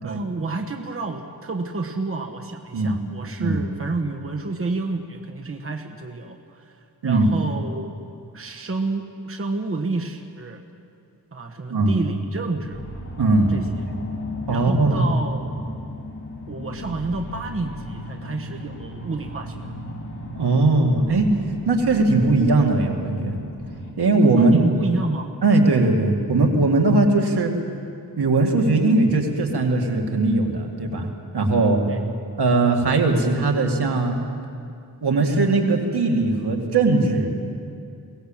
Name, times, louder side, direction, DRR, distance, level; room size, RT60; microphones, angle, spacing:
voice 1, 0.0-7.9 8.3-10.6 11.3-12.8 13.5-13.7 14.5-15.6 16.5-19.7 24.4-25.3 31.9-32.0, right 3 dB, 35° right, 4 dB, 1.3 m, -29 dB
sound 1, 12.7-23.9, left 1 dB, 50° left, 2.9 m, -35 dB
voice 2, 13.2-13.5 14.5-15.1 20.4-21.3 21.7-23.4 24.0-24.6 25.4-27.5 28.2-31.1 31.3-31.8 32.4-34.2 35.0-37.3, right 3 dB, 80° right, 2 dB, 2.4 m, -19 dB
22.5 x 17.5 x 7.4 m, 2.4 s
wide cardioid pair, 100°, 39 cm